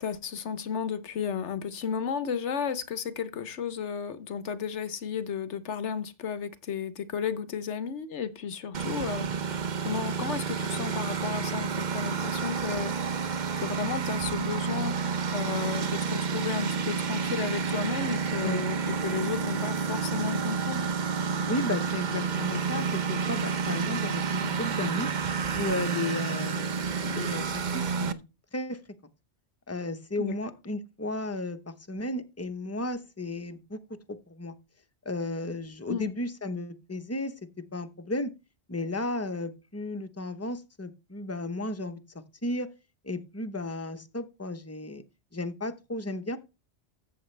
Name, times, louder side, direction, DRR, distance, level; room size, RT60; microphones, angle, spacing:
voice 1, 0.0-9.3 9.8-12.9 13.6-15.0 15.3-20.9 30.2-30.3 35.9-36.1, left 7 dB, 90° left, 1.3 m, -33 dB
Engine, 8.7-28.1, right 6 dB, 45° right, 0.8 m, -30 dB
voice 2, 21.5-25.1 25.5-26.7 27.0-28.2 28.5-28.8 29.7-33.8 34.1-34.5 35.0-37.3 37.7-38.3 38.7-42.7 43.0-45.0 45.3-46.4, left 2 dB, 15° left, 0.9 m, -34 dB
14.0 x 7.5 x 3.3 m
omnidirectional pair, 1.2 m